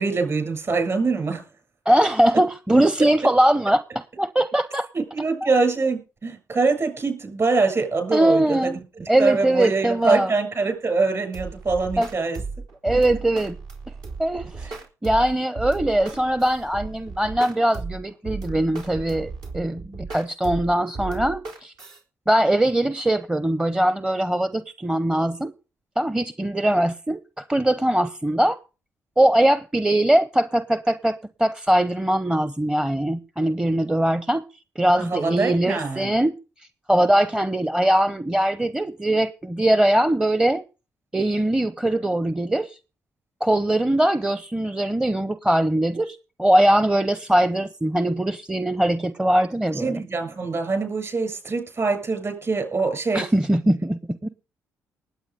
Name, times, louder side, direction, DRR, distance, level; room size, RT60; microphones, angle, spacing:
voice 1, 0.0-1.4 4.9-12.4 14.6-14.7 35.0-36.1 49.7-53.2, right 3 dB, 40° right, 7.4 m, -24 dB
voice 2, 1.9-4.9 8.1-8.8 9.1-10.3 12.0-12.1 12.8-13.6 14.2-14.7 15.0-21.7 22.3-25.5 26.0-28.6 29.2-34.4 34.8-36.4 36.9-40.6 41.1-42.8 43.4-50.0 53.1-54.3, right 1 dB, 10° right, 0.8 m, -21 dB
sound 1, 11.3-22.0, right 4 dB, 70° right, 3.7 m, -35 dB
19.5 x 8.4 x 5.1 m
hypercardioid pair, 45°, 7 cm